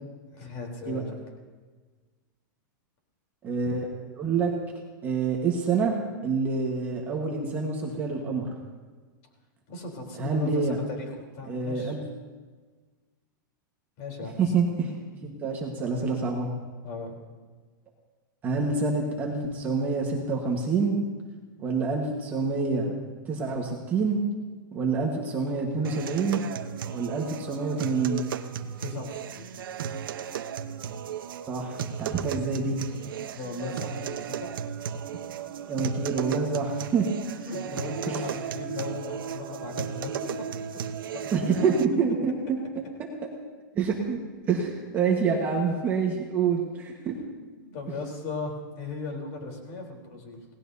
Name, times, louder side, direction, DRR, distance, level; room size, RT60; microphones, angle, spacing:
voice 1, 0.3-1.1 9.7-11.9 14.0-14.5 16.8-17.2 28.8-29.5 32.2-32.3 33.0-34.5 37.5-40.2 40.7-40.8 41.1-41.3 47.6-50.5, left 3 dB, 35° left, 1 dB, 3.7 m, -37 dB
voice 2, 3.4-3.9 4.2-4.5 5.0-6.0 6.2-8.5 10.2-10.8 11.5-12.0 14.4-14.9 15.2-16.5 18.4-21.0 21.6-22.9 23.3-24.2 24.7-26.4 26.9-28.2 31.5-32.8 35.7-37.0 41.3-42.3 43.7-44.2 44.5-47.1, right 4 dB, 15° right, 0 dB, 1.4 m, -27 dB
sound 1, 25.8-41.9, right 8 dB, 85° right, 1.0 m, -35 dB
28.0 x 18.5 x 2.8 m, 1.4 s
supercardioid pair, 175°, 11 cm